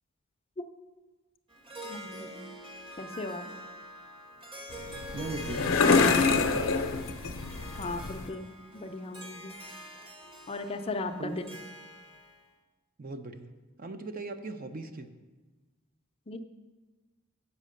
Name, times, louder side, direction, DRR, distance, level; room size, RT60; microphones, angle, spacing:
Harp, 1.5-12.4, equal, 25° right, 1.0 m, -45 dB
voice 1, 1.8-2.3 3.0-3.4 7.8-9.5 10.5-11.4 16.3-16.4, left 2 dB, 30° left, 6 dB, 0.5 m, -37 dB
sound 1, 4.7-8.3, left 4 dB, 75° left, 0.6 m, -26 dB
voice 2, 5.1-6.7 11.2-11.3 13.0-13.5 13.8-15.1, right 2 dB, 45° right, 7 dB, 0.6 m, -39 dB
8.5 x 5.8 x 6.5 m, 1.3 s
head